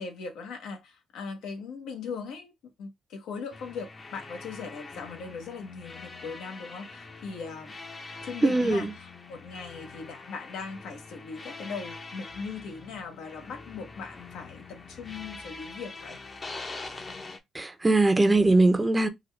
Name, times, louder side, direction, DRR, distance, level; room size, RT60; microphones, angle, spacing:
voice 1, 0.0-7.7 8.2-16.2, left 5 dB, 85° left, 0.9 m, -39 dB
sound 1, 3.5-17.4, left 3 dB, 35° left, 0.7 m, -44 dB
voice 2, 8.4-8.9 17.5-19.1, right 2 dB, 20° right, 0.6 m, -21 dB
3.7 x 2.3 x 3.2 m
cardioid pair, 90°, 0 cm